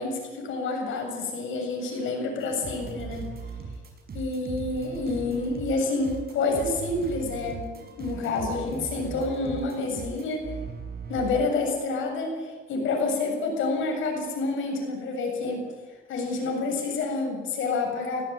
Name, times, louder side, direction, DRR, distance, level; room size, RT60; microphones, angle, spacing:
voice 1, 0.0-3.3 4.1-7.7 8.0-10.5 11.1-15.6 16.1-18.2, left 3 dB, 80° left, 2 dB, 7.4 m, -28 dB
sound 1, 2.4-11.5, right 5 dB, 50° right, 5.6 m, -39 dB
18.5 x 17.0 x 8.9 m, 1.3 s
cardioid pair, 90°, 20 cm